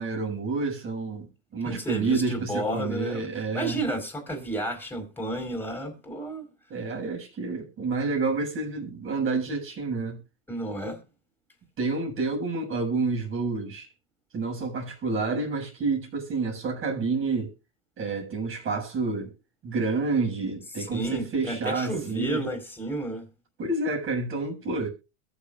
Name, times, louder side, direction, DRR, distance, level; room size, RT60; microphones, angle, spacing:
voice 1, 0.0-3.8 6.7-10.2 11.8-13.9 14.3-17.5 18.0-19.3 19.6-22.4 23.6-24.9, right 3 dB, 30° right, 7.5 m, -29 dB
voice 2, 1.6-3.3 3.5-6.4 10.5-11.0 20.8-23.3, right 1 dB, 5° left, 5.2 m, -31 dB
22.0 x 7.4 x 2.6 m
hypercardioid pair, 105°, 39 cm